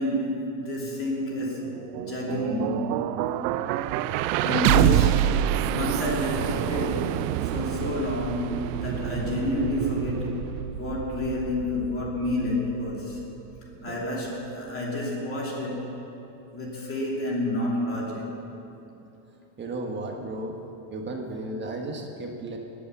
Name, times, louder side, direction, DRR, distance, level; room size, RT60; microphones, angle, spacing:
voice 1, 0.0-2.9 4.4-5.3 5.7-13.2 13.8-15.9 16.5-18.3, left 1 dB, 25° left, -3 dB, 2.9 m, -29 dB
sound 1, 1.7-13.7, right 13 dB, 80° right, 0.7 m, -27 dB
voice 2, 4.7-5.0 13.9-14.0 19.6-20.6 20.9-22.6, right 2 dB, 20° right, 2 dB, 1.2 m, -33 dB
20.5 x 8.7 x 7.0 m, 2.9 s
cardioid pair, 160°, 50 cm